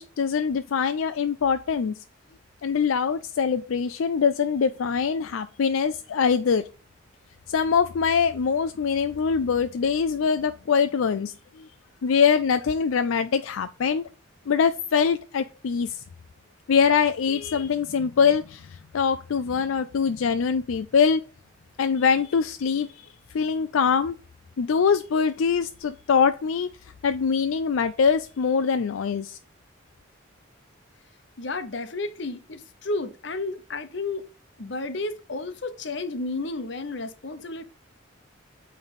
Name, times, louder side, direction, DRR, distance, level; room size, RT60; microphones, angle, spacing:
voice 1, 0.0-2.0 2.6-6.6 7.5-11.7 12.0-14.0 14.5-16.0 16.7-21.2 21.8-23.1 23.3-24.1 24.6-26.7 27.0-29.4, left 6 dB, 75° left, 0.4 m, -23 dB
voice 2, 31.4-34.2 34.6-37.6, left 2 dB, 55° left, 0.8 m, -32 dB
8.7 x 3.3 x 4.1 m
head